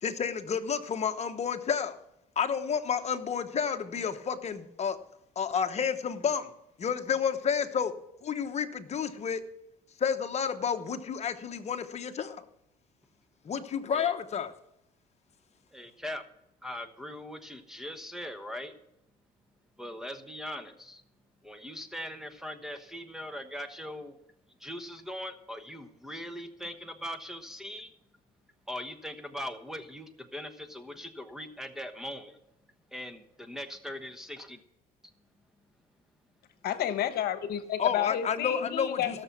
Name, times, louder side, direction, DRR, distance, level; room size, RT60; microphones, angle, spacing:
voice 1, 0.0-2.0 2.4-5.0 5.4-6.5 6.8-7.9 8.2-9.4 10.0-12.4 13.4-14.5 37.8-39.2, left 7 dB, 40° left, 8 dB, 1.1 m, -30 dB
voice 2, 15.7-16.2 16.6-18.7 19.8-21.0 21.4-24.2 24.6-27.9 28.7-32.4 32.9-34.6, left 1 dB, 5° right, 8 dB, 1.1 m, -40 dB
voice 3, 36.6-39.2, left 10 dB, 70° left, 10 dB, 1.2 m, -30 dB
17.0 x 6.8 x 6.0 m, 0.81 s
cardioid pair, 110°, 17 cm